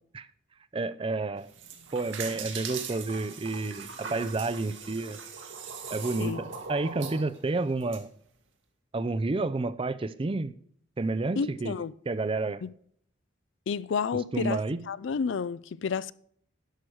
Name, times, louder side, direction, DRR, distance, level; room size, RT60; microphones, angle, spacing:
voice 1, 0.7-1.5 1.9-5.2 5.9-8.1 8.9-10.5 11.0-12.6 14.3-14.8, right 3 dB, 30° right, 0.4 m, -30 dB
sound 1, 1.4-8.0, right 6 dB, 75° right, 1.8 m, -40 dB
voice 2, 11.4-11.9 12.6-12.7 13.7-14.6 14.9-16.1, left 5 dB, 70° left, 0.4 m, -30 dB
11.5 x 6.3 x 4.6 m
head